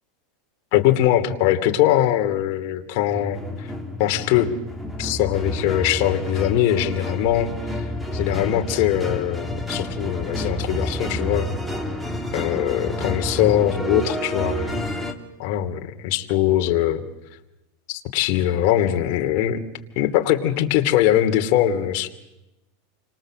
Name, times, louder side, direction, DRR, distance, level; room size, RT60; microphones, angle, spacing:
voice 1, 0.7-3.7 4.0-4.5 5.0-7.8 8.1-11.5 12.3-14.8 15.4-17.0 17.9-19.6 20.0-22.1, left 12 dB, 50° left, 5 dB, 2.7 m, -21 dB
sound 1, 3.1-15.1, left 1 dB, 5° right, 2.4 m, -29 dB
29.5 x 25.5 x 7.7 m, 0.95 s
supercardioid pair, 155°, 0 cm